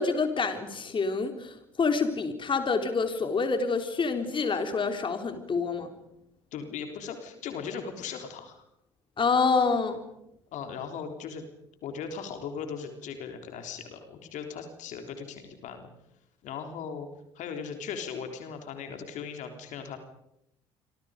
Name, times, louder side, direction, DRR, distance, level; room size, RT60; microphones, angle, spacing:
voice 1, 0.0-5.9 9.2-10.0, left 4 dB, 35° left, 6 dB, 3.6 m, -27 dB
voice 2, 6.5-8.6 10.5-11.5 11.8-15.9 16.4-17.1 17.3-20.0, left 6 dB, 60° left, 6 dB, 3.8 m, -38 dB
28.5 x 25.5 x 5.2 m, 0.82 s
hypercardioid pair, 55°, 14 cm